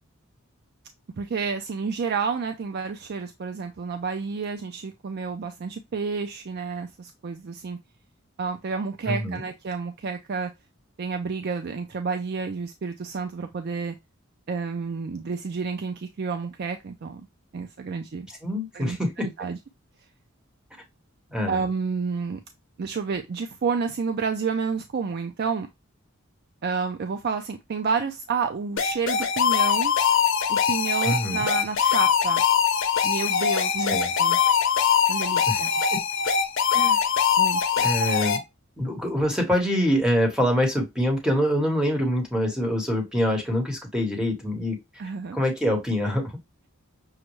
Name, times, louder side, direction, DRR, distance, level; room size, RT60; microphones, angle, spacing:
voice 1, 1.2-7.8 8.4-10.5 11.0-14.0 14.5-17.3 17.5-18.3 18.7-19.0 19.4-19.6 21.5-22.4 22.8-25.7 26.6-29.9 30.5-32.4 33.0-34.4 35.1-35.7 37.4-37.9 45.0-45.4, right 5 dB, 50° right, 0.4 m, -30 dB
voice 2, 9.1-9.4 18.4-19.5 21.3-21.6 31.0-31.5 33.9-34.1 35.5-35.6 35.9-36.0 36.7-37.0 37.8-38.4 38.8-44.8 45.3-46.3, equal, 5° right, 1.2 m, -25 dB
sound 1, 28.8-38.4, left 7 dB, 65° left, 0.8 m, -22 dB
6.3 x 2.2 x 3.0 m
head